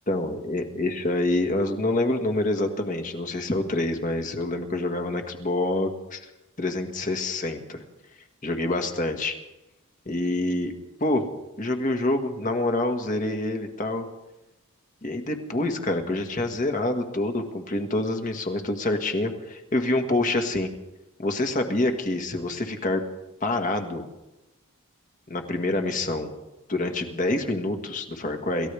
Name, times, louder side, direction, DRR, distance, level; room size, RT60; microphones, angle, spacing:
voice 1, 0.1-6.3 6.6-7.8 8.4-9.3 10.0-10.7 11.0-11.2 11.6-14.1 15.0-20.7 21.2-23.0 23.4-24.1 25.3-26.3 26.7-28.7, left 2 dB, 35° left, 5 dB, 1.6 m, -26 dB
27.5 x 15.0 x 3.5 m, 0.98 s
head